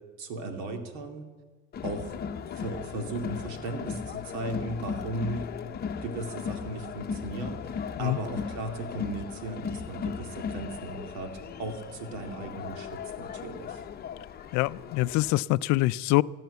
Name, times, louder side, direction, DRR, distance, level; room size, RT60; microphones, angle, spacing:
voice 1, 0.2-1.3 1.8-2.2 2.6-5.5 6.0-13.8, right 2 dB, 75° right, 5 dB, 2.5 m, -36 dB
Crowd, 1.7-15.3, left 6 dB, 30° left, 0.8 m, -37 dB
voice 2, 14.5-16.2, left 19 dB, 55° left, 17 dB, 0.5 m, -25 dB
15.0 x 11.5 x 8.1 m, 1.4 s
supercardioid pair, 120°, 34 cm